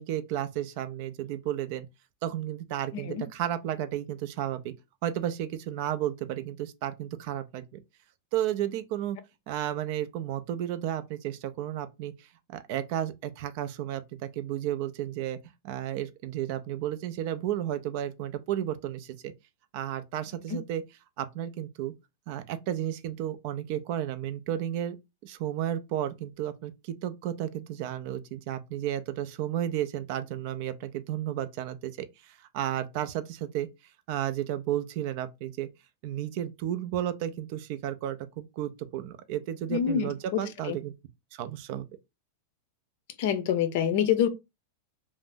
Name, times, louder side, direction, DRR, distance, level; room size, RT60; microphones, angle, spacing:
voice 1, 0.0-1.9 2.2-4.7 5.0-7.8 8.3-9.2 9.5-12.1 12.5-15.4 15.6-19.3 19.7-20.8 21.2-21.9 22.3-25.0 25.2-33.7 34.1-35.7 36.0-40.9 41.3-41.9, right 11 dB, 55° right, 0.4 m, -33 dB
voice 2, 2.9-3.2 20.5-20.6 39.7-40.1 40.6-40.8 43.2-44.3, left 9 dB, 60° left, 0.5 m, -26 dB
2.5 x 2.0 x 3.5 m
supercardioid pair, 130°, 0 cm